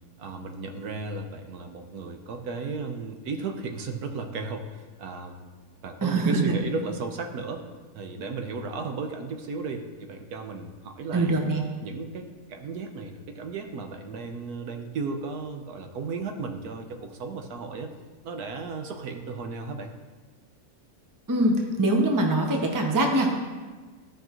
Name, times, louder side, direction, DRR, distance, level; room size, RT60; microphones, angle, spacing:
voice 1, 0.2-5.5 5.8-7.7 7.9-11.3 11.8-17.9 18.2-19.9, right 4 dB, 80° right, 5 dB, 1.3 m, -35 dB
voice 2, 6.0-6.6 11.1-11.6 21.3-23.4, right 2 dB, 20° right, 2 dB, 0.7 m, -23 dB
14.5 x 5.3 x 3.0 m, 1.4 s
omnidirectional pair, 1.6 m